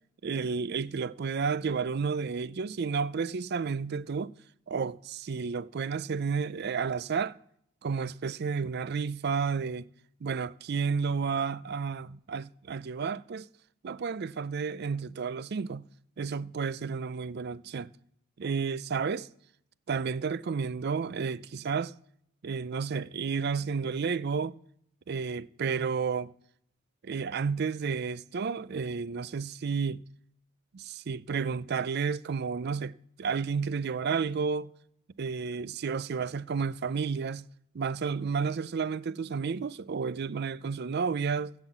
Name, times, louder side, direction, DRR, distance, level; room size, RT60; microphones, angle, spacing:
voice 1, 0.2-4.3 4.7-7.4 7.8-9.8 10.2-13.5 13.8-15.9 16.2-17.9 18.4-19.3 19.9-21.9 22.4-24.6 25.1-26.3 27.0-30.0 30.7-34.7 35.2-37.4 37.7-41.5, right 5 dB, 50° right, 0.4 m, -31 dB
16.0 x 5.8 x 7.2 m
head